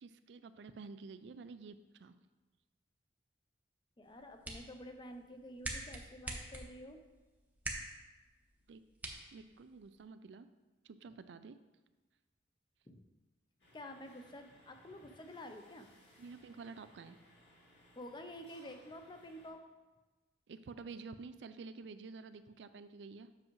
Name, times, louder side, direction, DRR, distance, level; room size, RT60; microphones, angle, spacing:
voice 1, 0.0-2.2 8.7-8.8 9.3-10.5 10.8-11.6 16.2-17.2 20.5-23.3, right 4 dB, 70° right, 12 dB, 0.4 m, -50 dB
voice 2, 4.0-7.0 12.9-13.0 13.7-15.9 18.0-19.6, left 1 dB, 25° left, 6 dB, 0.6 m, -50 dB
sound 1, 4.0-10.0, right 1 dB, 10° right, 0.7 m, -47 dB
sound 2, 13.6-19.5, left 1 dB, 75° left, 2.2 m, -64 dB
7.6 x 6.0 x 3.1 m, 1.2 s
head